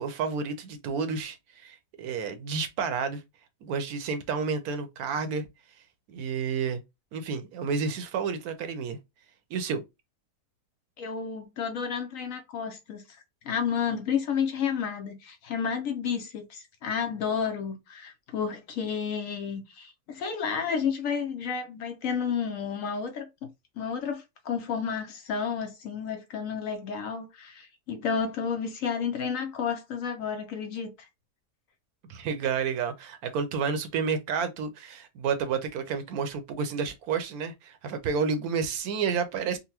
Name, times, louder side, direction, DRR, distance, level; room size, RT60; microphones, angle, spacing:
voice 1, 0.0-3.2 3.6-5.5 6.1-6.8 7.1-9.0 9.5-9.8 32.1-39.6, right 5 dB, 70° right, 1.1 m, -30 dB
voice 2, 11.0-31.1, left 6 dB, 65° left, 0.9 m, -31 dB
3.9 x 2.1 x 2.7 m
omnidirectional pair, 1.7 m